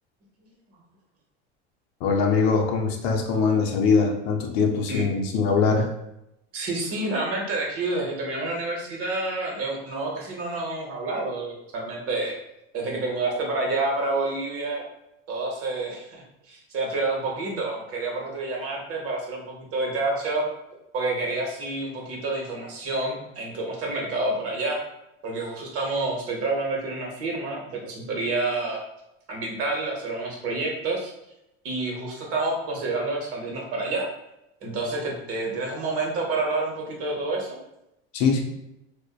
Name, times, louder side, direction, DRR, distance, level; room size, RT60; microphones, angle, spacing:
voice 1, 2.0-5.9 38.1-38.4, left 5 dB, 75° left, 2 dB, 0.6 m, -22 dB
voice 2, 6.5-12.4 12.7-14.8 15.3-20.5 20.9-24.8 25.2-28.8 29.3-31.1 31.6-34.1 34.6-37.6, right 2 dB, 50° right, -1 dB, 0.8 m, -28 dB
2.5 x 2.1 x 2.3 m, 0.85 s
supercardioid pair, 95°, 31 cm